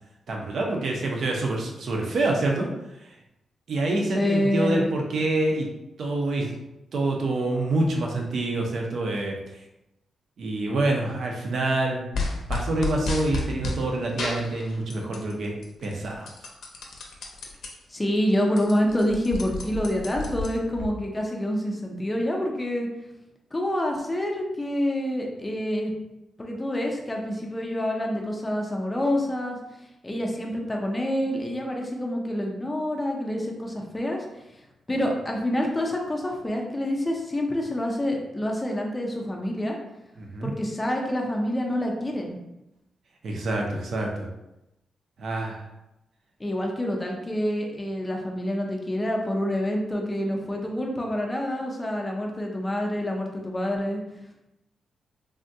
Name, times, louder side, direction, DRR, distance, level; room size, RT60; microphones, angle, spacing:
voice 1, 0.3-2.7 3.0-3.1 3.7-5.7 6.0-6.6 6.9-9.4 10.4-12.0 12.5-16.3 40.2-40.5 43.2-44.3 45.2-45.6, right 2 dB, 55° right, 0 dB, 0.5 m, -26 dB
voice 2, 4.1-4.9 17.9-22.9 23.5-25.9 26.4-29.6 30.0-34.2 34.9-39.8 40.4-42.4 46.4-54.0, left 1 dB, 15° left, 0 dB, 0.4 m, -27 dB
sound 1, 12.1-13.8 14.2-15.3 15.6-17.7 18.1-18.2 18.4-20.9, left 3 dB, 65° left, 0.5 m, -31 dB
3.4 x 2.2 x 2.6 m, 0.93 s
wide cardioid pair, 155°, 0 cm